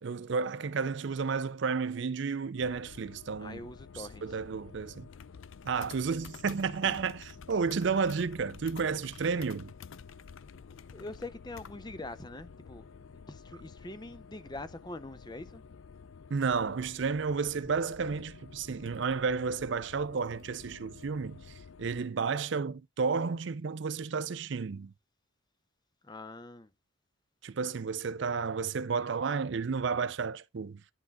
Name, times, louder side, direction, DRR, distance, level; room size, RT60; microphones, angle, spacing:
voice 1, 0.0-3.6 3.9-5.1 5.6-9.7 16.3-24.9 27.4-30.8, right 5 dB, 60° right, 0.5 m, -32 dB
sound 1, 2.6-22.1, left 6 dB, 70° left, 0.4 m, -50 dB
voice 2, 3.4-4.4 6.8-6.9 10.9-15.6 26.0-26.7, left 2 dB, 20° left, 0.6 m, -44 dB
11.0 x 3.8 x 3.5 m
head